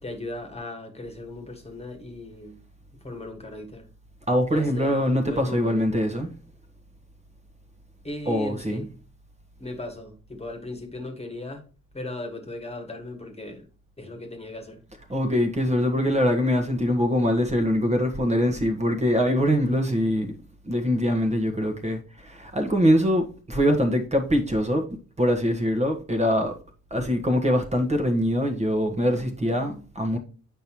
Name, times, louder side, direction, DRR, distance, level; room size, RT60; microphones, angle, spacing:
voice 1, 0.0-2.6 3.0-3.9 4.5-5.9 8.0-8.9 9.6-11.6 11.9-13.7 14.0-14.8 29.0-29.9, left 2 dB, 20° left, 1.6 m, -37 dB
voice 2, 4.3-6.3 8.3-8.8 15.1-20.4 20.6-24.8 25.2-26.5 26.9-30.2, equal, 20° right, 1.4 m, -23 dB
8.0 x 5.3 x 3.0 m
cardioid pair, 90°, 30 cm